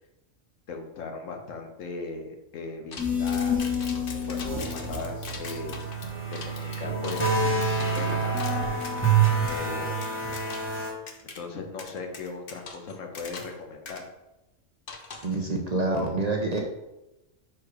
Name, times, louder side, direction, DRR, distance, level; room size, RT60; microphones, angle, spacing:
voice 1, 0.7-5.8 6.3-7.3 7.6-8.8 9.5-10.0 11.2-14.0, left 4 dB, 80° left, 3 dB, 1.3 m, -38 dB
sound 1, 2.9-9.0 9.5-9.6 10.0-10.8 11.1-11.4 11.8-13.6 13.8-14.0 14.9-15.4, left 4 dB, 50° left, 0.9 m, -42 dB
sound 2, 3.0-10.9, right 2 dB, 10° left, 1.2 m, -27 dB
voice 2, 15.2-16.6, right 2 dB, 40° right, 1 dB, 0.6 m, -27 dB
4.9 x 4.5 x 4.8 m, 0.97 s
omnidirectional pair, 1.3 m